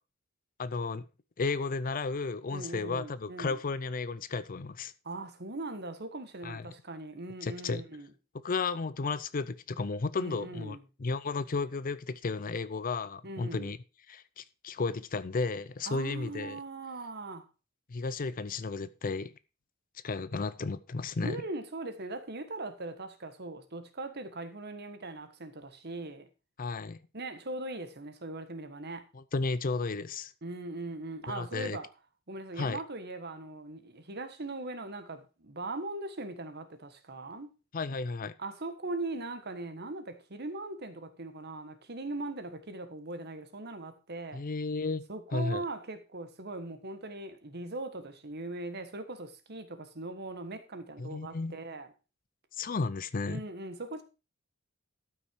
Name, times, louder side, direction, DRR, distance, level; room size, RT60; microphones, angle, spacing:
voice 1, 0.6-1.1 1.4-4.9 6.4-6.6 7.4-7.8 8.4-13.8 14.1-16.6 17.9-19.3 20.0-21.4 26.6-27.0 29.1-30.3 31.3-31.8 32.6-32.8 37.7-38.3 44.3-45.0 45.3-45.6 51.0-51.5 52.6-53.4, left 4 dB, 40° left, 0.5 m, -33 dB
voice 2, 2.5-3.6 5.0-8.1 10.2-10.8 13.2-13.7 15.9-17.5 21.2-26.3 27.1-29.1 30.4-31.9 32.3-37.5 38.4-44.4 45.1-51.9 53.2-54.0, right 2 dB, 50° right, 1.4 m, -40 dB
13.0 x 5.9 x 4.6 m
head